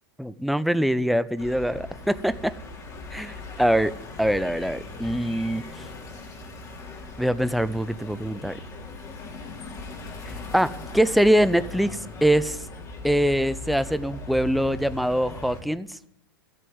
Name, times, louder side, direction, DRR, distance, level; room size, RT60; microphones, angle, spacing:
voice 1, 0.2-2.5 3.1-3.9 4.2-5.6 7.2-8.6 10.5-12.6 13.0-16.0, equal, ahead, 15 dB, 0.7 m, -23 dB
sound 1, 1.4-15.6, left 2 dB, 30° left, 3.5 m, -39 dB
13.5 x 7.7 x 9.5 m, 0.72 s
figure-of-eight pair, 95°, 11 cm